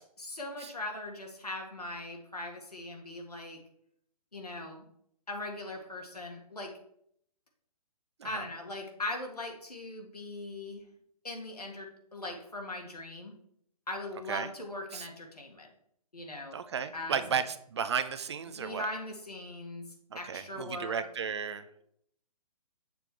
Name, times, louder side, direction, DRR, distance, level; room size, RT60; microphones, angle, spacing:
voice 1, 0.2-3.6 4.3-4.8 5.3-6.7 8.2-10.8 11.2-13.3 13.9-15.7 16.1-16.6 16.9-17.4 18.5-19.8 20.1-21.0, left 2 dB, 80° left, 2 dB, 1.7 m, -40 dB
voice 2, 16.5-17.4 17.7-18.9 20.3-21.6, right 7 dB, 45° right, 11 dB, 0.5 m, -33 dB
6.8 x 5.8 x 3.3 m, 0.69 s
figure-of-eight pair, 130°, 20 cm